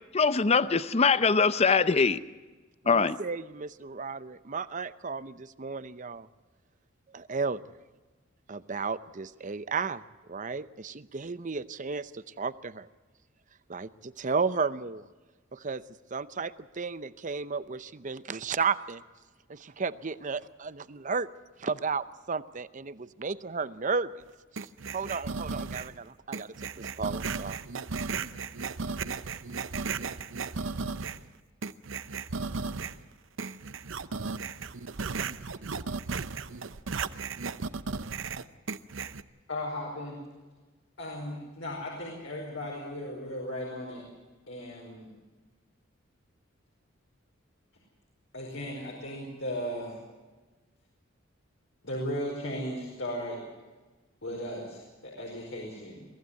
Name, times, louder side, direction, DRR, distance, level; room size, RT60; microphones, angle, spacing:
voice 1, 0.1-2.2 2.9-3.2, left 5 dB, 30° left, 14 dB, 0.6 m, -22 dB
voice 2, 2.8-6.3 7.1-7.6 8.5-10.0 10.3-12.9 13.7-15.0 15.5-15.8 16.1-19.0 19.5-21.3 21.6-24.1 24.9-27.6, right 5 dB, 40° right, 15 dB, 0.7 m, -33 dB
sound 1, 24.6-26.0 26.3-31.3 31.6-33.0 33.4-39.2, right 4 dB, 70° right, 0.8 m, -35 dB
voice 3, 39.5-40.2 41.0-44.0 44.5-45.1 48.3-50.0 51.8-53.4 54.2-56.1, equal, 70° left, -2 dB, 5.0 m, -36 dB
23.5 x 15.5 x 8.3 m, 1.2 s
head